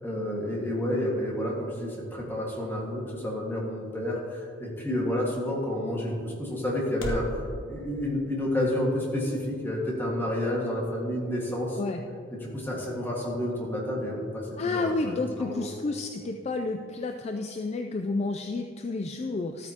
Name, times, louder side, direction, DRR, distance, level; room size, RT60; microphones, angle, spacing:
voice 1, 0.0-7.2 7.6-11.8 12.3-15.7, left 1 dB, 10° left, -3 dB, 1.6 m, -30 dB
sound 1, 1.1-7.4, equal, 85° left, 1.3 m, -44 dB
voice 2, 14.6-19.7, left 3 dB, 35° left, 5 dB, 0.3 m, -30 dB
13.0 x 8.7 x 2.8 m, 2.4 s
head